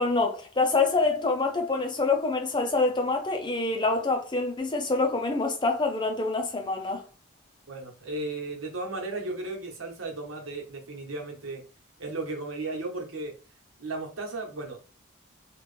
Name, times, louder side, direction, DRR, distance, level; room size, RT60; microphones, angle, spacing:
voice 1, 0.0-7.0, left 3 dB, 25° left, 0.5 m, -26 dB
voice 2, 7.7-11.6 12.0-13.3 13.8-14.8, right 2 dB, 90° right, 1.2 m, -35 dB
3.0 x 2.4 x 3.3 m
head